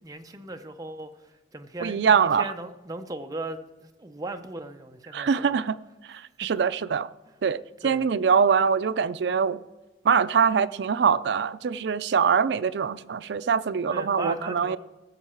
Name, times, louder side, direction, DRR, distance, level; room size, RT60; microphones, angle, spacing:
voice 1, 0.0-5.6 6.4-6.5 7.8-8.1 13.9-14.8, right 2 dB, 20° right, 5 dB, 0.7 m, -38 dB
voice 2, 1.8-2.5 5.1-5.8 6.1-7.1 7.4-9.6 10.0-14.8, right 6 dB, 65° right, 15 dB, 0.4 m, -23 dB
17.0 x 7.2 x 4.4 m, 1.1 s
head